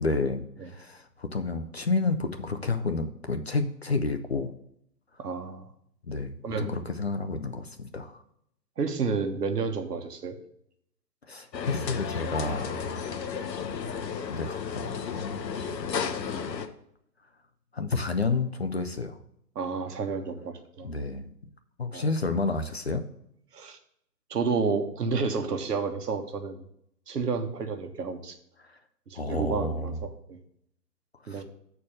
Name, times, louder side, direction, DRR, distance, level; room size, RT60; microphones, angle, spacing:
voice 1, 0.0-4.5 6.1-8.2 11.3-13.2 13.8-15.4 17.7-19.2 20.8-21.3 21.8-23.0 28.6-28.8 29.1-30.0 31.2-31.4, left 3 dB, 40° left, 7 dB, 0.5 m, -30 dB
voice 2, 5.2-5.7 6.4-6.7 8.8-10.4 19.5-20.9 21.9-22.1 23.5-23.8 24.3-26.6 27.1-28.4 29.1-30.4 31.3-31.4, right 5 dB, 65° right, 6 dB, 1.3 m, -30 dB
sound 1, 11.5-16.7, left 6 dB, 75° left, 1.1 m, -33 dB
7.0 x 4.5 x 6.4 m, 0.73 s
hypercardioid pair, 155°, 50 cm